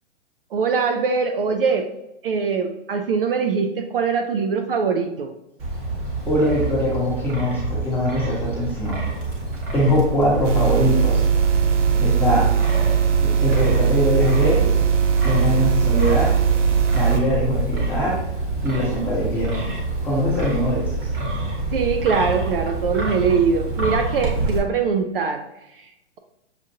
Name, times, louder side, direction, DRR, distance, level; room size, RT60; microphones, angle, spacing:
voice 1, 0.5-1.9 2.2-5.3 21.7-25.4, right 5 dB, 50° right, 5 dB, 0.4 m, -22 dB
Wind, 5.6-24.6, right 2 dB, 25° right, 1.1 m, -27 dB
voice 2, 6.3-9.0 9.7-11.2 12.0-12.5 13.2-14.7 15.2-16.4 16.9-18.2 18.6-19.5 20.0-20.9, left 1 dB, 5° left, -6 dB, 0.9 m, -22 dB
sound 1, 10.4-17.2, right 7 dB, 85° right, 0.8 m, -19 dB
6.5 x 2.5 x 2.7 m, 0.88 s
hypercardioid pair, 145°, 36 cm